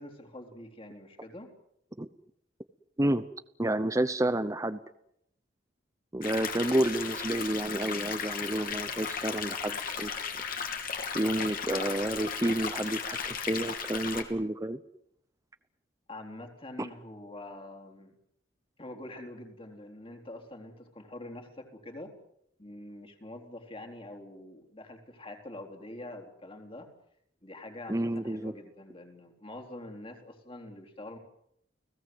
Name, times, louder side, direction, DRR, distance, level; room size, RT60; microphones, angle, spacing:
voice 1, 0.0-1.5 6.6-7.1 16.1-18.2 18.8-22.1 22.6-26.9 27.4-31.2, left 1 dB, 30° left, 4 dB, 3.9 m, -45 dB
voice 2, 3.6-4.8 6.1-10.1 11.1-14.8 16.8-16.9 27.9-28.5, right 1 dB, 15° right, 11 dB, 0.9 m, -30 dB
sound 1, 6.2-14.2, left 6 dB, 50° left, 3.2 m, -35 dB
30.0 x 18.0 x 7.9 m, 0.75 s
head